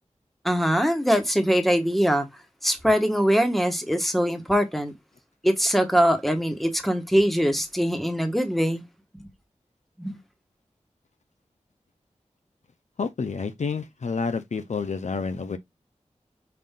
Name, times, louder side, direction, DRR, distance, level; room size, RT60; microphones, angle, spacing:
voice 1, 0.4-2.3 2.6-4.9 5.4-8.8 9.2-9.3 10.0-10.2, equal, ahead, 1.3 m, -22 dB
voice 2, 13.0-15.6, left 4 dB, 70° left, 0.6 m, -29 dB
5.7 x 2.5 x 3.6 m
cardioid pair, 45°, 12 cm